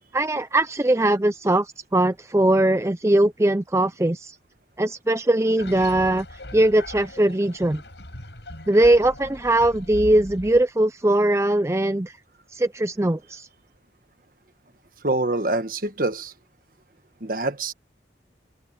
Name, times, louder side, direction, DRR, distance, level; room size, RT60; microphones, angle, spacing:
voice 1, 0.1-4.4 4.8-6.3 6.5-7.8 8.7-12.2 12.5-13.5, right 1 dB, 15° right, 0.5 m, -20 dB
sound 1, 5.6-10.6, left 1 dB, 75° left, 7.1 m, -39 dB
voice 2, 15.0-16.3 17.2-17.7, right 2 dB, 50° right, 1.4 m, -25 dB
head